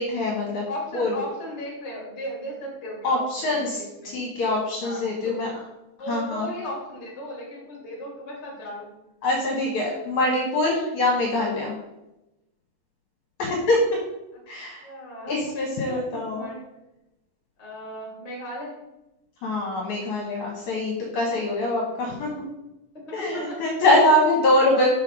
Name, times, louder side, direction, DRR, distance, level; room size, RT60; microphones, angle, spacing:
voice 1, 0.0-0.6 0.9-1.2 3.0-3.8 4.1-5.5 6.1-6.5 9.2-11.7 13.4-13.8 14.5-14.8 15.3-16.5 19.4-22.5 23.1-24.9, left 1 dB, 65° left, -2 dB, 2.4 m, -24 dB
voice 2, 0.7-4.2 4.8-5.3 6.0-8.9 14.3-14.4 14.8-15.5 15.9-16.6 17.6-18.7 21.8-22.3 23.1-23.7 24.6-24.9, equal, 20° left, -3 dB, 2.4 m, -36 dB
6.7 x 5.6 x 4.8 m, 0.95 s
omnidirectional pair, 4.1 m